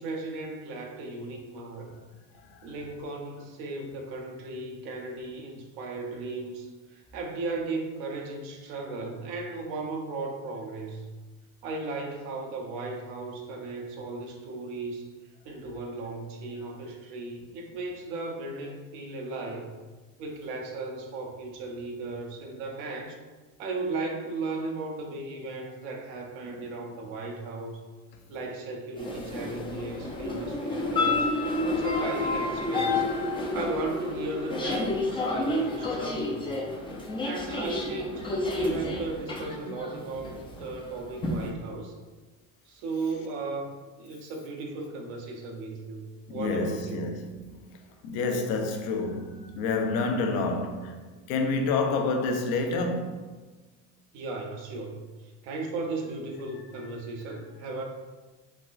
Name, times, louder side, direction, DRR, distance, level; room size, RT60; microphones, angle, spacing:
voice 1, 0.0-1.9 2.6-11.1 11.6-15.1 15.4-19.7 20.2-23.2 23.6-27.8 28.3-33.1 33.5-36.5 37.2-42.0 42.6-46.0 46.3-47.0 54.1-57.8, right 3 dB, 70° right, 0.7 m, -36 dB
sound 1, 29.0-41.5, left 2 dB, 15° left, 0.4 m, -30 dB
voice 2, 46.3-47.5 48.0-51.0 51.3-53.2, left 3 dB, 60° left, 0.6 m, -28 dB
3.4 x 2.2 x 2.4 m
hypercardioid pair, 75°, 41 cm